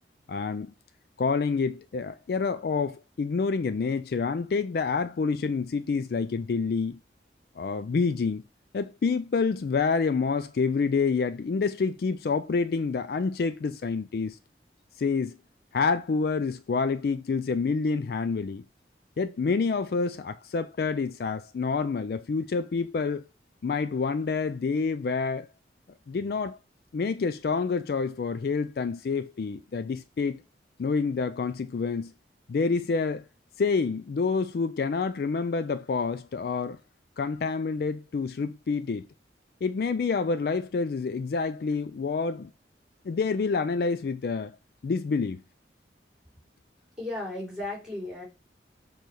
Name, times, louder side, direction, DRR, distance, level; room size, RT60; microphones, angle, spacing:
voice 1, 0.3-0.7 1.2-7.0 7.6-8.4 8.7-14.4 15.0-15.3 15.7-18.6 19.2-23.3 23.6-25.5 26.1-26.6 26.9-30.4 30.8-32.1 32.5-33.2 33.6-36.8 37.2-39.1 39.6-42.5 43.1-44.5 44.8-45.4, left 4 dB, 55° left, 0.3 m, -28 dB
voice 2, 47.0-48.2, left 2 dB, 5° right, 3.2 m, -35 dB
6.8 x 3.1 x 4.6 m
head